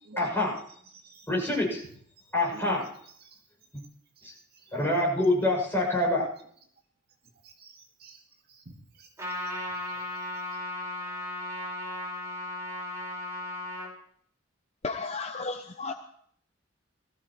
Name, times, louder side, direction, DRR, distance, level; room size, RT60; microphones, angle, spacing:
voice 1, 0.2-0.6 1.3-1.8 2.3-2.9 4.2-4.3 4.7-6.3, left 1 dB, 10° left, -3 dB, 7.2 m, -26 dB
voice 2, 7.4-8.2 8.5-9.1, right 2 dB, 55° right, 1 dB, 2.1 m, -49 dB
Trumpet, 9.2-13.9, left 1 dB, 15° right, 5.1 m, -36 dB
voice 3, 14.8-15.9, left 3 dB, 35° left, 6 dB, 0.7 m, -33 dB
21.0 x 14.5 x 3.2 m, 0.62 s
head